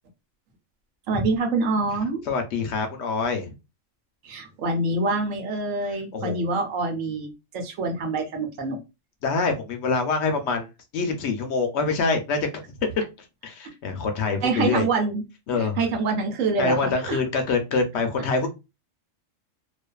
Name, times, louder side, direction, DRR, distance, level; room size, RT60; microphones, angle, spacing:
voice 1, 1.1-2.2 4.2-8.8 14.4-15.2 15.5-17.2, right 3 dB, 80° right, 4 dB, 1.1 m, -26 dB
voice 2, 2.3-3.4 6.1-6.5 9.2-10.7 10.9-12.5 13.4-14.9 15.5-15.8 16.6-18.5, left 4 dB, 65° left, 5 dB, 0.8 m, -25 dB
2.5 x 2.4 x 2.2 m, 0.26 s
omnidirectional pair, 1.3 m